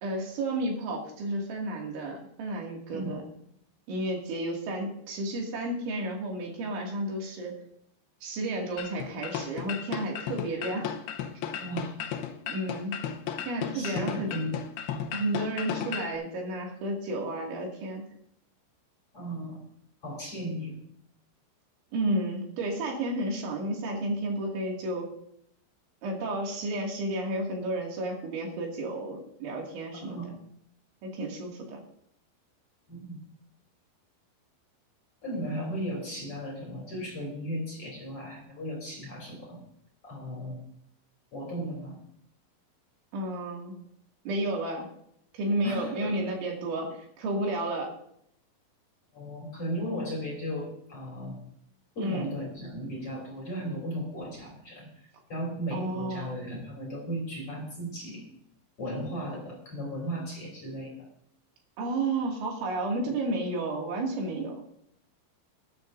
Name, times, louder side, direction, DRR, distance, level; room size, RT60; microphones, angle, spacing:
voice 1, 0.0-3.2 3.9-7.5 8.2-10.9 12.5-12.9 13.5-14.3 15.1-18.0 21.9-25.1 26.0-30.4 31.0-31.8 43.1-43.8 44.3-44.9 45.3-46.9 47.2-47.9 52.0-52.3 55.7-56.4 61.8-64.5, right 1 dB, 70° right, -1 dB, 4.6 m, -32 dB
sound 1, 8.8-16.1, left 9 dB, 85° left, 2.3 m, -35 dB
voice 2, 11.6-11.9 13.7-14.5 14.9-15.0 19.1-19.6 20.0-20.8 30.0-30.3 32.9-33.2 35.2-39.6 40.0-40.6 41.3-42.0 45.6-46.2 49.1-51.4 52.0-58.3 58.8-61.1, equal, 30° left, -2 dB, 3.8 m, -36 dB
21.0 x 10.5 x 2.6 m, 0.71 s
omnidirectional pair, 5.8 m